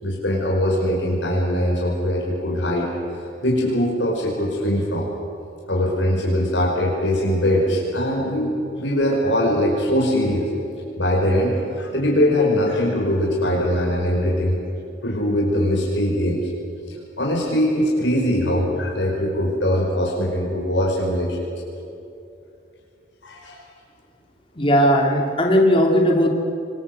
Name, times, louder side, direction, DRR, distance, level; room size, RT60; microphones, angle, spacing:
voice 1, 0.0-2.9 3.4-5.1 5.7-10.5 11.0-14.6 15.0-16.5 17.2-21.4 23.2-23.6, equal, 80° left, -2 dB, 5.6 m, -21 dB
voice 2, 24.6-26.3, equal, 30° left, 1 dB, 2.8 m, -17 dB
25.5 x 22.0 x 7.9 m, 2.8 s
head